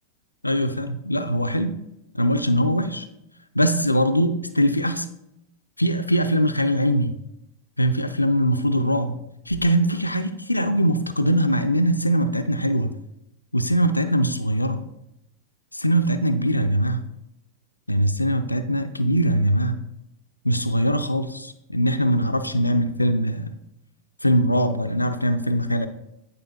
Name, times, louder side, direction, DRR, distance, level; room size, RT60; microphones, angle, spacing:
voice 1, 0.4-1.7 2.1-3.1 3.6-5.1 5.8-7.1 7.8-9.2 9.5-12.9 13.5-14.8 15.7-17.0 17.9-19.8 20.4-23.5 24.2-25.9, equal, 85° left, 9 dB, 0.4 m, -22 dB
9.2 x 4.8 x 3.0 m, 0.85 s
figure-of-eight pair, 90°, 0 cm